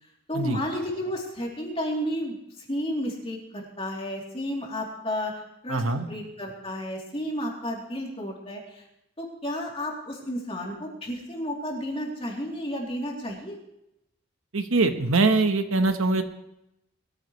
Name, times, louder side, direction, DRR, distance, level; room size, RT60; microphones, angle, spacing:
voice 1, 0.3-8.8 9.2-13.6, equal, 25° left, -2 dB, 3.1 m, -32 dB
voice 2, 5.7-6.1 14.5-16.2, right 3 dB, 85° right, 7 dB, 1.2 m, -23 dB
21.5 x 14.0 x 3.2 m, 0.84 s
head